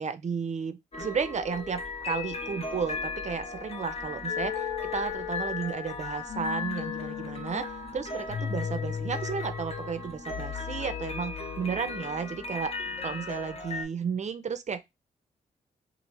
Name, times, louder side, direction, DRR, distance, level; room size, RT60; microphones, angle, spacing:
voice 1, 0.0-12.8 13.0-14.8, right 6 dB, 40° right, 0.5 m, -33 dB
sound 1, 0.9-13.8, left 4 dB, 35° left, 0.9 m, -37 dB
sound 2, 4.3-12.2, left 8 dB, 55° left, 0.4 m, -38 dB
2.7 x 2.4 x 3.0 m
hypercardioid pair, 40°, 18 cm